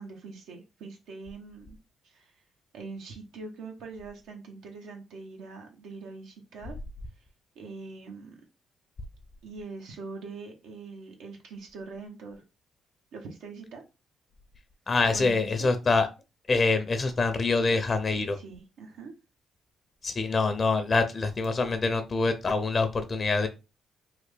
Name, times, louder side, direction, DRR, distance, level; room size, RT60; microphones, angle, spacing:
voice 1, 0.0-1.8 2.0-2.3 2.7-6.8 7.6-8.4 9.4-12.4 13.1-13.8 15.1-15.7 18.3-19.1, right 4 dB, 85° right, 2 dB, 0.7 m, -43 dB
voice 2, 14.9-16.1 16.5-18.4 20.0-23.5, left 3 dB, 35° left, 9 dB, 0.5 m, -25 dB
3.3 x 2.2 x 3.2 m, 0.27 s
cardioid pair, 90°, 0 cm